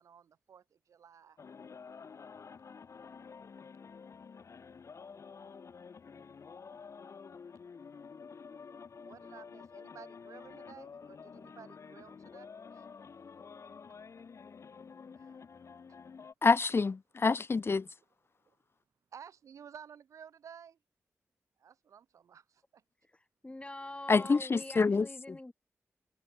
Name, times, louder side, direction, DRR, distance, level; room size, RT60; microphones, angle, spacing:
voice 1, 0.0-1.4 9.0-12.9 15.2-15.3 17.8-17.9 19.1-20.8 21.6-22.8 24.2-24.4, right 8 dB, 90° right, 5.4 m, -54 dB
sound 1, 1.4-16.3, left 5 dB, 70° left, 4.4 m, -50 dB
voice 2, 16.4-17.8 24.1-25.1, left 4 dB, 50° left, 0.9 m, -26 dB
voice 3, 23.4-25.5, left 2 dB, 20° left, 2.3 m, -44 dB
cardioid pair, 50°, 5 cm